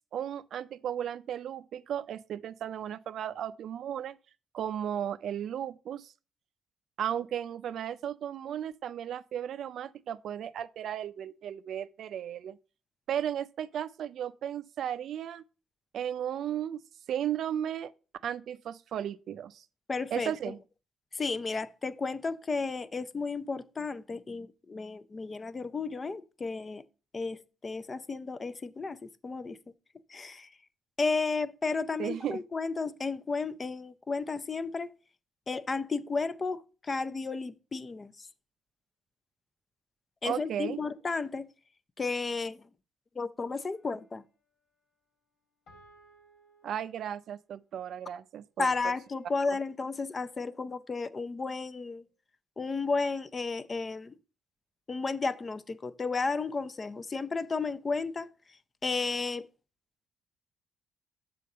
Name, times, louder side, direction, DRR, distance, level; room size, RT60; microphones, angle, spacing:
voice 1, 0.1-4.2 4.5-6.1 7.0-12.6 13.1-15.4 15.9-16.8 17.1-17.9 18.2-19.6 20.1-20.6 32.0-32.4 40.2-40.8 46.6-48.9, right 10 dB, 70° right, 0.4 m, -35 dB
voice 2, 19.9-20.5 21.1-26.8 27.1-29.6 30.1-30.5 31.0-34.9 35.5-38.3 40.2-41.5 42.0-42.6 43.2-44.2 48.6-52.0 52.6-54.1 54.9-58.3 58.8-59.5, left 4 dB, 30° left, 0.5 m, -33 dB
sound 1, 43.7-44.4 45.7-47.5 48.7-51.1, left 1 dB, 80° left, 2.3 m, -61 dB
6.8 x 3.8 x 5.3 m
cardioid pair, 90°, 0 cm